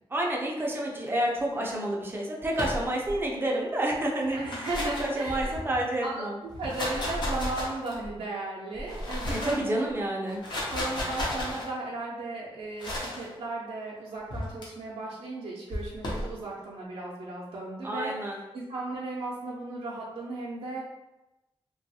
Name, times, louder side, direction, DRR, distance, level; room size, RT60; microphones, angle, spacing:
voice 1, 0.1-4.6 5.0-6.4 9.3-10.4 17.8-18.4, right 1 dB, 20° right, -1 dB, 0.4 m, -29 dB
sound 1, 2.5-3.2 4.2-5.8 6.5-8.1 8.7-9.7 10.3-11.7 12.8-13.2 14.3-14.7 15.7-16.3, left 1 dB, 50° left, 0.7 m, -33 dB
voice 2, 4.3-5.6 6.0-6.2 6.6-9.9 10.7-18.1 18.5-20.8, right 2 dB, 75° right, -5 dB, 0.5 m, -36 dB
2.9 x 2.3 x 2.7 m, 1.0 s
wide cardioid pair, 175°, 10 cm